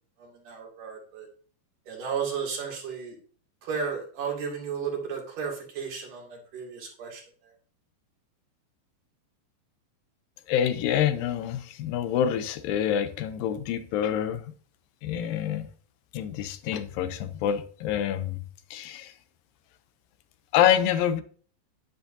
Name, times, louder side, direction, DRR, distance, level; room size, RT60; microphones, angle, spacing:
voice 1, 0.2-1.3 1.9-3.2 3.6-7.2, right 6 dB, 70° right, 4.1 m, -34 dB
voice 2, 10.5-14.5 15.0-15.7 16.1-18.4 18.7-19.1 20.5-21.2, left 9 dB, 90° left, 2.5 m, -26 dB
10.5 x 10.5 x 2.8 m
omnidirectional pair, 3.9 m